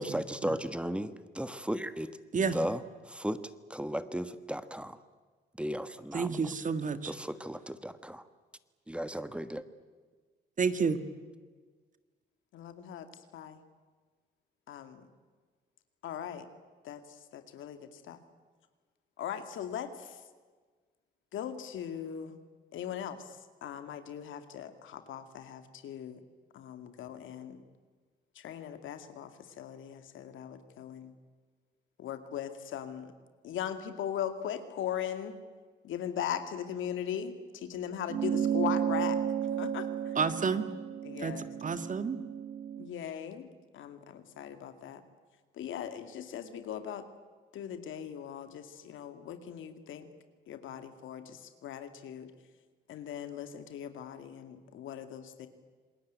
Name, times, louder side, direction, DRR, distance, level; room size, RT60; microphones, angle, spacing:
voice 1, 0.0-5.0 5.5-6.5 7.0-8.2 8.9-9.6, equal, 5° right, 12 dB, 1.4 m, -36 dB
voice 2, 6.1-7.1 10.6-11.0 40.2-40.7 41.2-41.3 41.6-42.2, right 5 dB, 40° right, 11 dB, 1.8 m, -29 dB
voice 3, 12.5-13.6 14.7-15.1 16.0-16.5 16.8-18.2 19.2-20.2 21.3-22.4 22.7-26.2 26.5-27.6 28.3-31.1 32.0-33.1 33.4-35.4 35.8-39.2 39.6-40.2 41.0-41.5 42.8-45.0 45.5-47.1 47.5-50.1 50.5-52.3 52.9-55.5, left 9 dB, 80° left, 9 dB, 2.3 m, -39 dB
sound 1, 38.1-42.9, right 9 dB, 60° right, 1.4 m, -33 dB
27.5 x 20.5 x 9.4 m, 1.4 s
cardioid pair, 90°, 20 cm